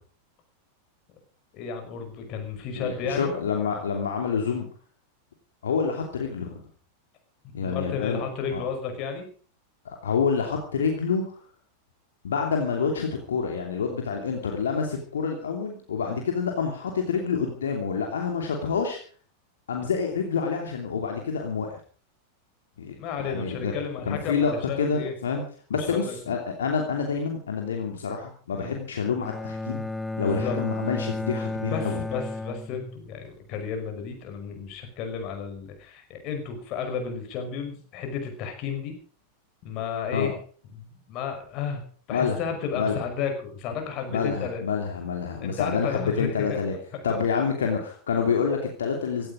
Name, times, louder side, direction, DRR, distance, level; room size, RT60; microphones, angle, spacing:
voice 1, 1.5-3.3 7.4-9.3 16.1-16.2 23.0-25.1 25.7-26.2 28.6-28.8 30.2-30.6 31.7-38.9 39.6-40.4 40.7-41.8 42.1-44.6 45.4-46.6, left 6 dB, 40° left, 5 dB, 5.5 m, -32 dB
voice 2, 2.8-4.7 5.6-6.6 7.5-8.2 8.5-8.6 9.8-11.4 12.2-19.0 19.7-21.8 22.8-23.7 24.1-25.4 25.7-29.8 30.2-32.0 40.1-40.3 42.1-42.4 42.7-43.0 44.1-46.7 47.0-49.3, left 6 dB, 65° left, 2 dB, 2.8 m, -27 dB
Bowed string instrument, 29.2-33.3, left 2 dB, 5° left, 0.9 m, -33 dB
17.0 x 14.0 x 5.1 m, 0.43 s
figure-of-eight pair, 90°, 0 cm